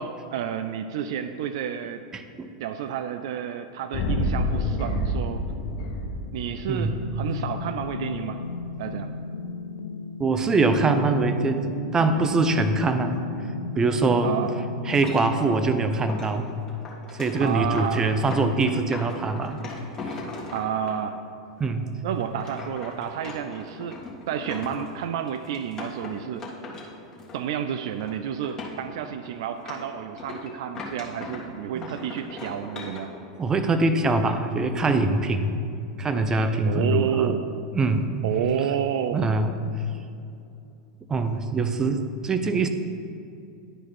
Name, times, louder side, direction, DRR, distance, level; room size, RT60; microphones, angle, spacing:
voice 1, 0.0-2.0 2.6-5.4 6.3-8.4 8.8-9.1 14.2-14.5 17.4-18.1 20.5-21.2 22.0-24.0 24.3-26.5 27.3-33.1 36.7-37.5 38.2-39.2, right 9 dB, 60° right, 9 dB, 0.3 m, -30 dB
voice 2, 2.1-2.5 6.7-7.0 10.2-13.2 13.8-14.3 14.9-16.5 17.1-19.6 20.0-20.2 21.6-21.9 31.7-31.9 33.4-35.6 36.0-37.4 37.7-38.1 39.1-39.5 41.1-42.7, right 3 dB, 20° right, 8 dB, 0.6 m, -23 dB
sound 1, 3.9-7.9, left 1 dB, 55° left, 0.9 m, -28 dB
sound 2, 6.8-15.5, left 4 dB, 80° left, 0.4 m, -35 dB
sound 3, 14.9-20.9 21.6-21.7 22.1-27.6 27.8-28.1 28.4-31.5 31.8-33.0, left 3 dB, 20° left, 1.8 m, -39 dB
11.0 x 4.8 x 4.2 m, 2.6 s
figure-of-eight pair, 90°, 3 cm